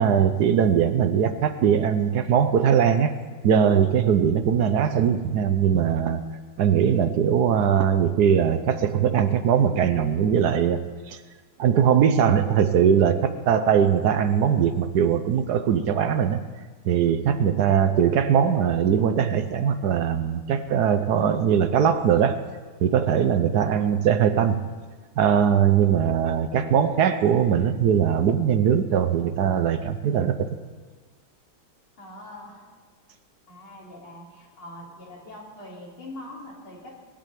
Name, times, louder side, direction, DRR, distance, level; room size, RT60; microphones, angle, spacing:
voice 1, 0.0-3.1 3.4-6.2 6.6-10.8 11.1-11.2 11.6-16.4 16.8-22.5 22.8-24.6 25.2-30.5, right 8 dB, 65° right, 10 dB, 1.1 m, -21 dB
voice 2, 23.4-23.8 32.0-32.7 33.5-36.9, left 1 dB, 80° left, -3 dB, 4.3 m, -43 dB
19.5 x 8.8 x 7.6 m, 1.4 s
omnidirectional pair, 2.3 m